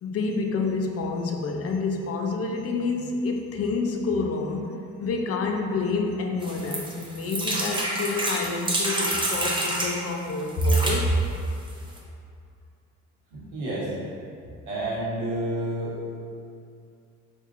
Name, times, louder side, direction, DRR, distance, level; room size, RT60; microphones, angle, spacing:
voice 1, 0.0-11.2, left 3 dB, 50° left, 2 dB, 0.4 m, -27 dB
sound 1, 6.4-9.9 10.5-11.0 11.7-11.8 12.0-12.1, right 1 dB, 15° right, 0.5 m, -28 dB
voice 2, 13.3-13.9 14.7-15.9, right 1 dB, 80° right, -7 dB, 1.1 m, -29 dB
4.2 x 2.5 x 2.4 m, 2.4 s
cardioid pair, 90°, 30 cm